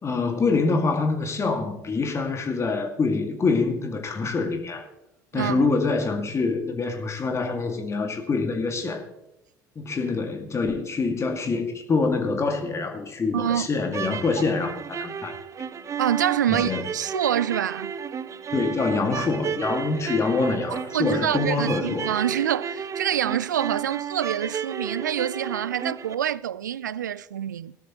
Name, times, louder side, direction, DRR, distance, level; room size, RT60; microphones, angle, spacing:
voice 1, 0.0-4.8 5.3-9.0 9.8-15.3 16.5-16.8 18.5-22.1, left 4 dB, 30° left, 2.2 m, -25 dB
voice 2, 5.3-5.7 13.3-13.7 16.0-17.9 20.9-27.8, right 10 dB, 80° right, 0.4 m, -26 dB
sound 1, 13.8-26.1, right 7 dB, 30° right, 0.8 m, -33 dB
18.5 x 12.5 x 3.1 m
figure-of-eight pair, 60°, 10 cm